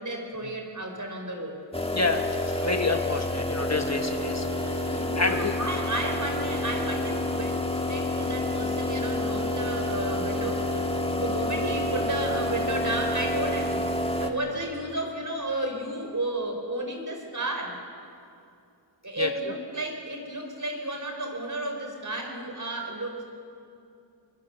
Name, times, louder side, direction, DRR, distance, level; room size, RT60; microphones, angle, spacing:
voice 1, 0.0-1.6 4.9-10.8 11.0-13.9 14.2-17.8 19.0-23.2, right 1 dB, 40° right, 3 dB, 4.3 m, -32 dB
sound 1, 1.7-14.3, left 1 dB, 10° left, 1.7 m, -29 dB
voice 2, 1.9-5.6 19.2-19.5, left 3 dB, 35° left, 6 dB, 1.4 m, -29 dB
23.5 x 22.5 x 6.9 m, 2.6 s
wide cardioid pair, 60°, 45 cm